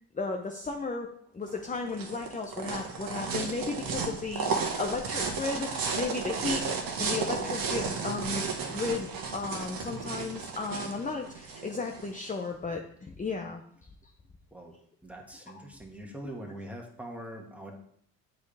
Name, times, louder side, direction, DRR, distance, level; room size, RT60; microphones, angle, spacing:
voice 1, 0.1-1.1 1.3-5.7 5.9-6.6 7.0-13.6 15.5-15.6 16.2-16.3, left 4 dB, 20° left, 3 dB, 0.8 m, -34 dB
sound 1, 1.5-12.3, right 5 dB, 60° right, 1.5 m, -33 dB
voice 2, 15.0-17.7, right 1 dB, 5° right, 0 dB, 1.8 m, -42 dB
8.1 x 4.9 x 3.4 m, 0.65 s
supercardioid pair, 70°, 39 cm